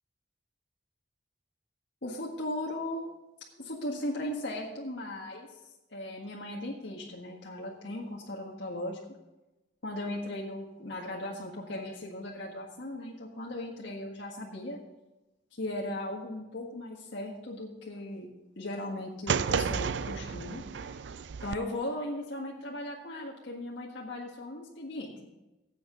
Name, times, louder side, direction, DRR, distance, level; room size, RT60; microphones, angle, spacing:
voice 1, 2.0-3.1 3.6-5.5 5.9-9.0 9.8-14.8 15.6-18.3 18.6-20.6 21.4-25.3, left 1 dB, 70° left, -2 dB, 1.7 m, -37 dB
sound 1, 19.3-21.6, right 6 dB, 65° right, 0.4 m, -32 dB
16.0 x 8.1 x 3.9 m, 1.0 s
head